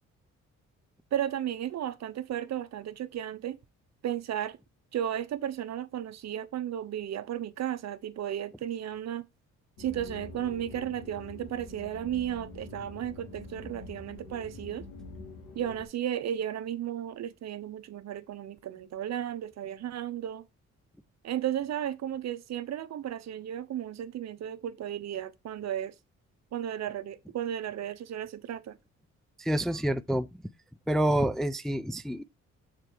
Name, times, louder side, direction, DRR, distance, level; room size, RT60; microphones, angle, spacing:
voice 1, 1.1-3.6 4.0-4.6 4.9-9.2 9.8-14.8 15.5-20.4 21.2-25.9 26.5-28.8, right 10 dB, 60° right, 0.8 m, -34 dB
sound 1, 9.8-15.9, left 3 dB, 90° left, 2.8 m, -46 dB
voice 2, 29.4-30.3 30.9-32.2, right 1 dB, ahead, 0.4 m, -27 dB
6.6 x 4.5 x 4.4 m
cardioid pair, 90°, 30 cm